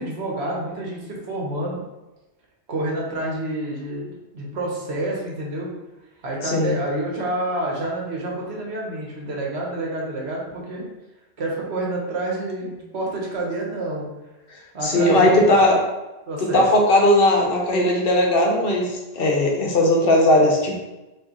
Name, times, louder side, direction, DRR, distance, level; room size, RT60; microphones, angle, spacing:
voice 1, 0.0-1.8 2.7-5.7 6.2-10.9 11.4-14.1 14.7-15.5 16.3-16.6, right 1 dB, 70° right, -2 dB, 1.2 m, -28 dB
voice 2, 6.4-6.8 14.8-15.8 16.4-20.8, left 1 dB, 60° left, 0 dB, 0.9 m, -18 dB
4.5 x 2.7 x 2.9 m, 1.1 s
omnidirectional pair, 1.1 m